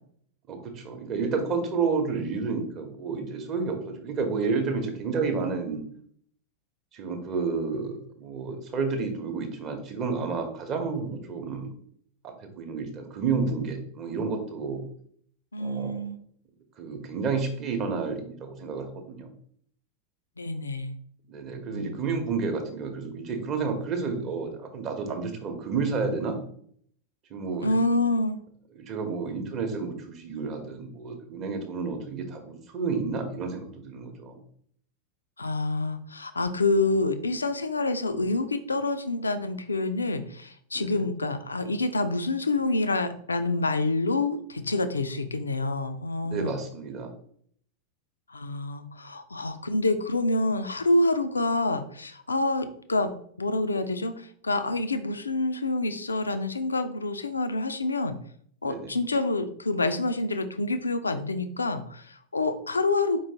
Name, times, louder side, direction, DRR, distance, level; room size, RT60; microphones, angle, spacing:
voice 1, 0.5-5.8 6.9-11.7 12.2-14.8 15.6-16.0 16.8-19.3 21.3-26.4 27.3-27.7 28.7-34.4 40.7-41.0 46.2-47.1 58.6-58.9, right 4 dB, 35° right, 4 dB, 0.8 m, -30 dB
voice 2, 15.5-16.2 20.4-21.0 21.7-22.1 27.6-28.4 35.4-46.6 48.3-58.2 58.6-63.2, left 2 dB, 75° left, 10 dB, 0.3 m, -27 dB
4.5 x 3.0 x 2.8 m, 0.63 s
figure-of-eight pair, 90°, 0 cm